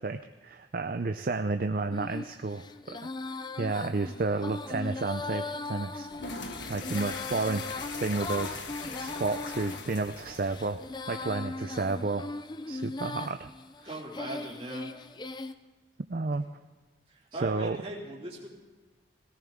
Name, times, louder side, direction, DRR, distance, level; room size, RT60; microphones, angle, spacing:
voice 1, 0.0-3.0 3.6-8.6 9.0-10.8 11.1-12.3 12.7-13.5 16.1-16.4 17.3-17.8, right 3 dB, 50° right, 7 dB, 0.5 m, -31 dB
Female singing, 1.9-15.5, left 3 dB, 25° left, 0.5 m, -39 dB
sound 1, 6.1-11.1, left 4 dB, 80° left, 1.5 m, -40 dB
voice 2, 13.8-14.9 16.3-16.4 17.1-18.5, right 2 dB, 30° right, -3 dB, 3.1 m, -40 dB
18.0 x 17.5 x 3.7 m, 1.3 s
head